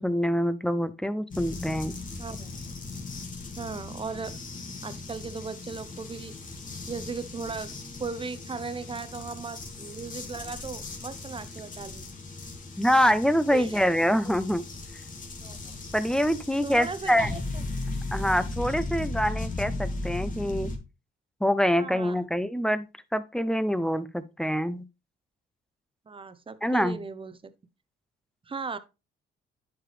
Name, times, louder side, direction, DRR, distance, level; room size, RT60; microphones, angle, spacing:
voice 1, 0.0-1.9 12.8-14.6 15.9-17.3 18.1-20.7 21.4-24.8 26.6-27.0, equal, 5° left, 0.6 m, -25 dB
sound 1, 1.3-20.8, left 2 dB, 40° left, 2.2 m, -37 dB
voice 2, 2.2-2.6 3.6-4.4 4.8-6.4 6.9-7.7 8.0-12.1 13.5-13.9 14.2-14.3 15.4-15.8 16.6-17.6 21.8-22.3 26.1-27.5 28.5-28.8, right 5 dB, 25° right, 0.8 m, -37 dB
10.0 x 4.8 x 3.3 m
cardioid pair, 90°, 20 cm